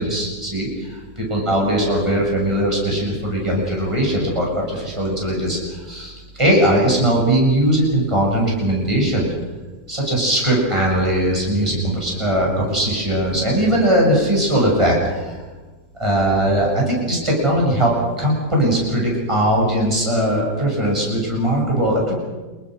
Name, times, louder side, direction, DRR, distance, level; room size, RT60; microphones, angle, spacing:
voice 1, 0.0-9.3 9.9-15.4 16.0-17.9 18.2-22.1, right 1 dB, 15° right, -2 dB, 7.4 m, -19 dB
28.5 x 21.5 x 6.6 m, 1.3 s
omnidirectional pair, 1.8 m